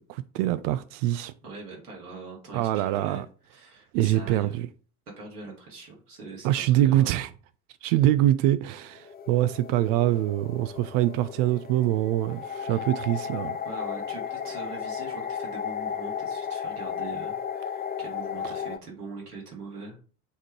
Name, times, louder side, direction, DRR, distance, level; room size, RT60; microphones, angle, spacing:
voice 1, 0.0-1.3 2.5-3.3 3.9-4.7 6.4-7.3 7.8-13.6, right 13 dB, 55° right, 0.5 m, -24 dB
voice 2, 1.4-3.2 3.5-4.6 5.2-7.2 7.8-8.0 12.7-12.9 13.6-20.0, right 3 dB, 85° right, 2.1 m, -42 dB
sound 1, 8.8-18.8, left 7 dB, 20° left, 0.6 m, -34 dB
7.0 x 3.6 x 4.6 m
figure-of-eight pair, 60°, 45 cm